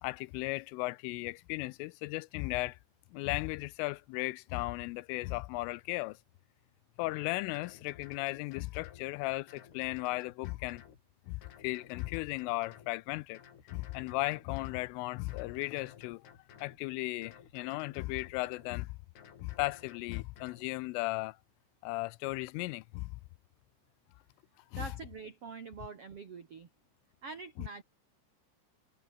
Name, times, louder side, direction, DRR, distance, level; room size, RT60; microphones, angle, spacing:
voice 1, 0.0-2.8 3.1-6.2 7.0-10.8 11.3-13.4 13.7-16.2 16.6-18.9 19.4-21.4 21.8-23.1 24.7-24.9, left 22 dB, 85° left, 3.2 m, -36 dB
sound 1, 7.0-7.1 7.5-9.1 9.5-11.0 11.4-12.9 13.3-14.9 15.3-16.8 17.2-18.7 19.2-20.7, left 8 dB, 55° left, 4.9 m, -56 dB
voice 2, 24.8-26.7 27.2-27.8, right 5 dB, 45° right, 2.1 m, -45 dB
omnidirectional pair, 5.6 m